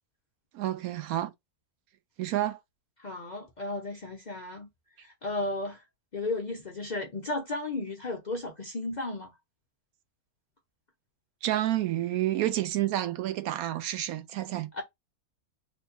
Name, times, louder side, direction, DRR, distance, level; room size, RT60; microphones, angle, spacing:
voice 1, 0.5-1.3 2.2-2.6 11.4-14.7, right 13 dB, 80° right, 1.0 m, -29 dB
voice 2, 3.0-4.7 5.0-5.8 6.1-9.3 14.7-14.8, left 2 dB, 45° left, 0.6 m, -34 dB
3.1 x 2.2 x 4.2 m
omnidirectional pair, 1.6 m